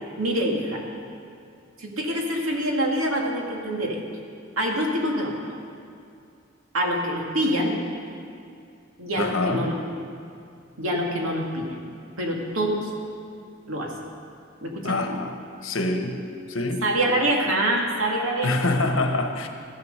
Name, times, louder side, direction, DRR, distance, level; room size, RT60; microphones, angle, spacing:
voice 1, 0.2-0.8 1.8-4.0 4.6-5.4 6.7-7.8 9.0-9.7 10.8-11.8 12.2-12.9 13.7-13.9 14.6-15.2 16.8-18.7, right 1 dB, 90° right, 0 dB, 2.1 m, -25 dB
voice 2, 9.2-9.7 14.8-15.3 15.6-16.2 16.5-16.8 18.4-19.5, left 2 dB, 70° left, 5 dB, 1.2 m, -25 dB
14.5 x 10.5 x 6.7 m, 2.4 s
head